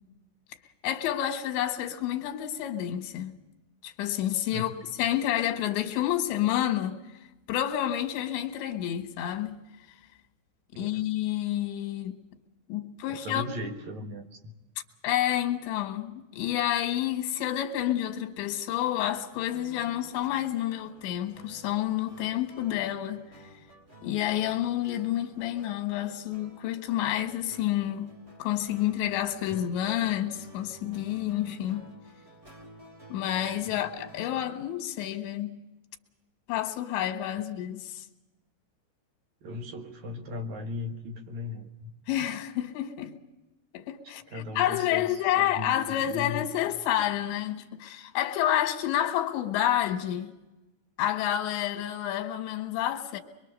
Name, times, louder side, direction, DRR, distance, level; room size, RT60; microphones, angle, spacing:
voice 1, 0.8-3.4 3.8-4.7 5.0-7.0 7.5-9.6 10.8-12.2 12.7-13.7 15.0-23.2 24.0-31.9 33.1-35.6 36.5-38.1 42.1-43.1 43.7-50.4 51.0-53.2, left 12 dB, 90° left, 3.7 m, -29 dB
voice 2, 4.5-4.8 10.7-11.0 13.1-14.5 29.5-29.6 33.7-33.8 39.4-41.9 44.3-45.1 45.4-46.5, left 2 dB, 60° right, 2.1 m, -38 dB
sound 1, 19.5-34.7, right 2 dB, 20° right, 3.0 m, -52 dB
23.5 x 23.5 x 6.5 m
omnidirectional pair, 5.0 m